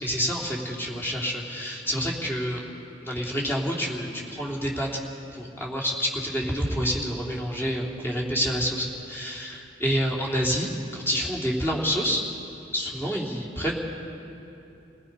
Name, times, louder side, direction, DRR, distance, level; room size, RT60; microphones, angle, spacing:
voice 1, 0.0-2.6 3.0-4.9 5.3-12.2 12.7-13.8, equal, 15° left, -3 dB, 3.2 m, -28 dB
29.5 x 18.5 x 5.5 m, 2.9 s
head